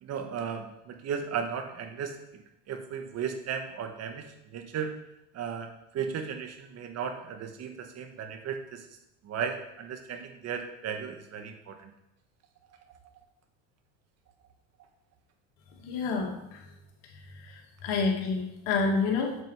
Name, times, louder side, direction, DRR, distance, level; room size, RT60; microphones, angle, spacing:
voice 1, 0.0-2.2 2.7-4.9 5.3-8.9 9.2-11.9, right 7 dB, 45° right, 6 dB, 1.5 m, -35 dB
voice 2, 15.8-16.6 17.8-19.3, left 4 dB, 70° left, 1 dB, 2.4 m, -28 dB
7.9 x 7.7 x 4.9 m, 0.83 s
supercardioid pair, 105°, 36 cm